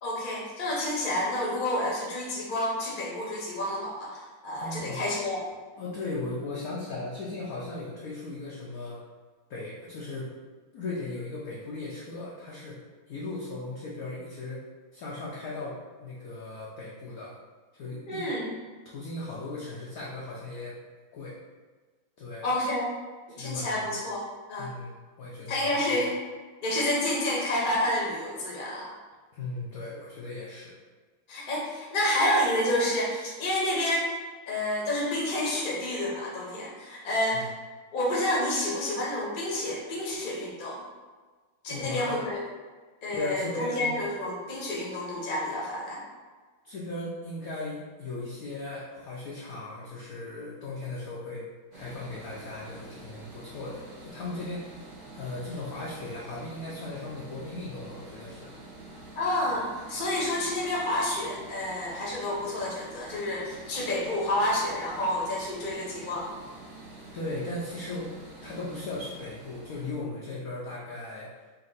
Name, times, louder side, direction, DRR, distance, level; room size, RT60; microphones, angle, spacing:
voice 1, 0.0-5.4 18.1-18.5 22.4-22.9 23.3-24.7 25.5-26.1 26.6-28.9 31.3-34.1 34.5-37.5 37.9-40.8 41.6-42.4 43.0-46.0 59.1-66.3, left 1 dB, 40° left, -4 dB, 0.7 m, -29 dB
voice 2, 4.6-5.0 5.8-9.0 9.5-10.3 10.7-12.8 13.1-14.7 14.9-17.3 17.7-18.3 18.8-20.8 21.1-21.4 22.2-22.5 23.3-24.0 24.6-26.0 29.3-30.7 37.3-37.5 41.7-42.2 43.1-44.0 46.6-51.5 51.7-54.9 55.1-58.5 67.1-68.1 68.4-71.3, left 2 dB, 70° left, -5 dB, 0.8 m, -37 dB
sound 1, 51.7-69.9, right 2 dB, 55° right, 0.6 m, -47 dB
4.1 x 2.6 x 4.0 m, 1.4 s
omnidirectional pair, 2.3 m